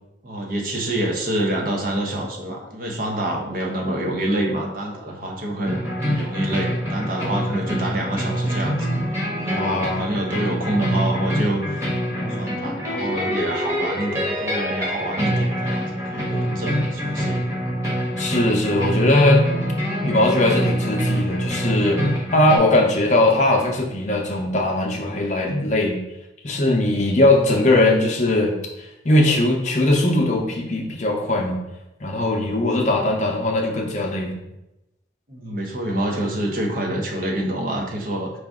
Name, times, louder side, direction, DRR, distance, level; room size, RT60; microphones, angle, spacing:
voice 1, 0.2-8.8 9.3-11.8 12.2-17.4 35.3-38.3, right 1 dB, 50° right, 0 dB, 0.8 m, -27 dB
sound 1, 5.6-22.6, equal, 15° right, 1.1 m, -25 dB
voice 2, 9.5-10.1 18.2-19.5 20.0-26.0 26.4-31.6 32.0-34.4, left 2 dB, 40° left, 1 dB, 0.6 m, -20 dB
4.7 x 2.5 x 3.6 m, 0.93 s
head